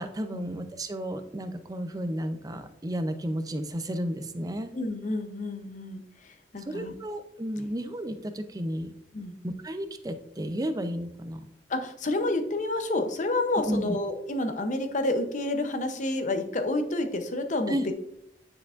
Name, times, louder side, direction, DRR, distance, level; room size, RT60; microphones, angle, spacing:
voice 1, 0.0-4.7 6.7-8.9 9.4-11.4 13.7-14.0 17.7-17.8, equal, 20° right, 8 dB, 0.5 m, -32 dB
voice 2, 4.7-6.0 6.5-6.9 7.6-7.7 9.1-9.3 11.7-17.9, left 2 dB, 45° left, 7 dB, 0.7 m, -29 dB
9.7 x 4.5 x 2.5 m, 0.77 s
head